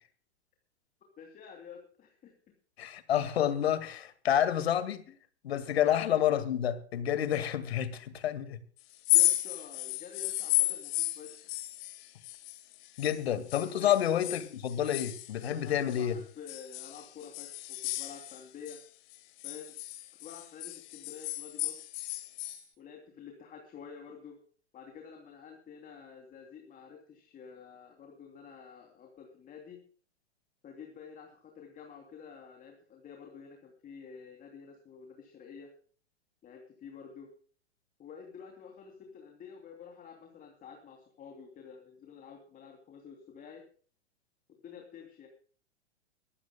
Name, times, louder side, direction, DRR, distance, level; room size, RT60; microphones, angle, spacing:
voice 1, 1.2-2.3 5.1-5.2 5.7-6.0 9.1-11.5 13.8-13.9 15.5-18.8 19.4-19.7 20.2-21.8 22.8-24.4 24.7-29.8 30.6-35.7 36.4-37.3 38.0-43.6 44.5-45.3, left 6 dB, 25° left, 3 dB, 3.0 m, -49 dB
voice 2, 2.8-5.0 5.4-8.6 13.0-16.1, left 10 dB, 65° left, 12 dB, 2.1 m, -29 dB
sound 1, 8.9-13.2 13.5-16.0 16.5-18.8 19.1-22.6, left 18 dB, 45° left, 2.1 m, -33 dB
23.5 x 15.0 x 2.3 m, 0.43 s
figure-of-eight pair, 105°, 34 cm